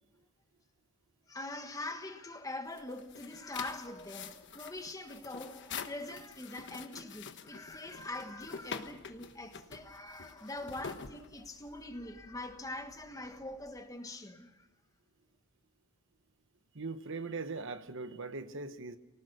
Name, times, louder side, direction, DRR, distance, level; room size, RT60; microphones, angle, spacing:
voice 1, 1.3-14.7, left 2 dB, 15° left, 1.4 m, -43 dB
sound 1, 2.7-11.8, left 6 dB, 55° left, 1.2 m, -46 dB
sound 2, 7.6-13.8, right 1 dB, 70° right, 3.0 m, -64 dB
voice 2, 16.7-19.0, right 3 dB, 55° right, 1.1 m, -40 dB
25.5 x 19.0 x 6.7 m
head